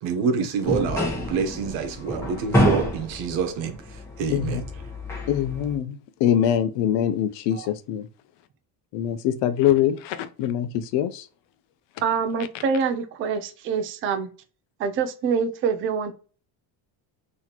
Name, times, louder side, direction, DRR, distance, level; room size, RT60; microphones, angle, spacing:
voice 1, 0.0-3.7 4.2-4.6, right 5 dB, 80° right, 1.1 m, -27 dB
sound 1, 0.6-5.7, equal, 5° left, 1.0 m, -27 dB
voice 2, 4.3-4.6 5.3-8.1 8.9-11.2, left 10 dB, 65° left, 0.7 m, -23 dB
voice 3, 12.0-14.3 14.8-16.1, right 6 dB, 30° right, 0.3 m, -25 dB
4.0 x 3.0 x 2.9 m
cardioid pair, 165°, 45 cm